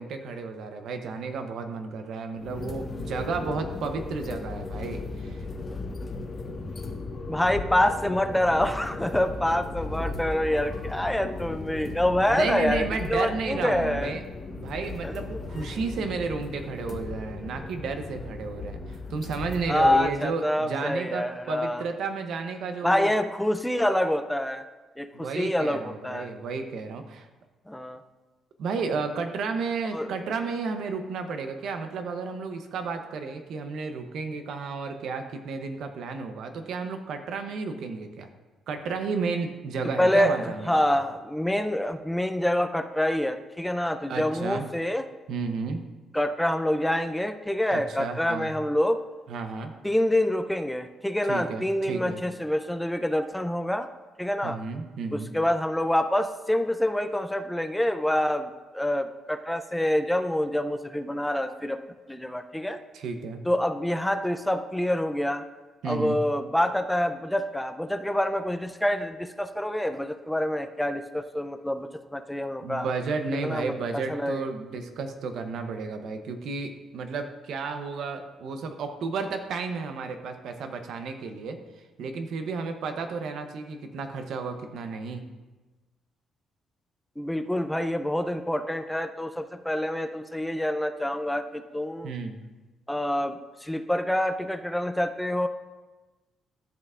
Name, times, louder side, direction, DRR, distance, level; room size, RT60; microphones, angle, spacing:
voice 1, 0.0-5.5 12.3-14.2 14.5-23.1 25.1-27.3 28.6-38.3 38.7-41.0 44.1-44.7 45.3-45.8 47.7-48.5 49.3-49.7 51.3-52.2 54.4-55.3 62.9-63.4 65.8-66.2 72.6-81.6 82.0-85.2 92.0-92.4, right 4 dB, 75° right, 6 dB, 0.7 m, -32 dB
sound 1, 2.3-20.0, left 3 dB, 40° left, 1.0 m, -36 dB
voice 2, 7.3-14.2 15.0-15.1 19.7-21.8 22.8-24.6 25.0-26.3 27.7-28.0 29.9-30.1 40.0-45.0 46.1-49.0 49.8-53.9 54.2-54.6 55.1-61.8 62.1-62.8 63.4-65.4 65.9-72.9 73.4-73.7 74.1-74.5 87.2-92.1 92.9-95.5, left 1 dB, 5° left, 8 dB, 0.4 m, -26 dB
13.0 x 5.5 x 2.4 m, 1.2 s
cardioid pair, 90°, 0 cm